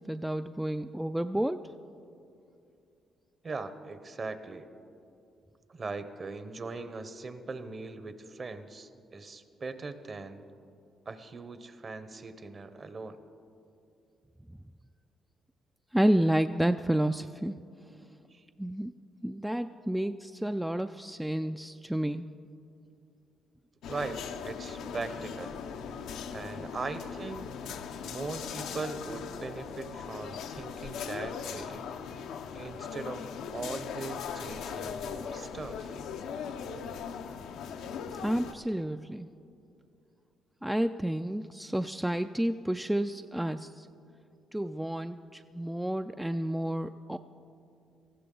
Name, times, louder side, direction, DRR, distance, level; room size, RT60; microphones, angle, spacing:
voice 1, 0.1-1.7 14.5-14.6 15.9-17.6 18.6-18.9 19.2-22.3 38.2-39.3 40.6-43.9 44.5-47.2, right 1 dB, 5° right, 8 dB, 0.3 m, -30 dB
voice 2, 3.4-4.7 5.7-10.4 11.1-13.2 18.3-18.5 23.9-25.6 26.3-27.5 28.0-31.8 32.5-36.0, right 3 dB, 35° right, 10 dB, 0.9 m, -40 dB
sound 1, 23.8-38.5, left 6 dB, 85° left, 0.7 m, -39 dB
19.0 x 14.5 x 3.9 m, 2.6 s
cardioid pair, 90°, 0 cm